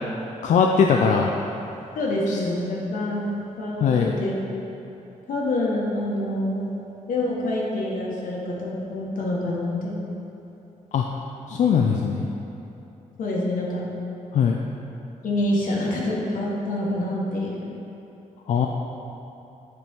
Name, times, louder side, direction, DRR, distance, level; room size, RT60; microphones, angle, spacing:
voice 1, 0.4-1.3 2.3-2.4 3.8-4.1 10.9-11.1 11.5-12.3 14.3-14.6 18.5-18.7, left 6 dB, 65° left, 1 dB, 0.4 m, -20 dB
voice 2, 1.9-4.3 5.3-6.7 7.1-10.1 13.2-13.9 15.2-17.7, left 1 dB, 85° left, -4 dB, 1.3 m, -26 dB
9.2 x 4.5 x 3.6 m, 2.9 s
wide cardioid pair, 150°, 14 cm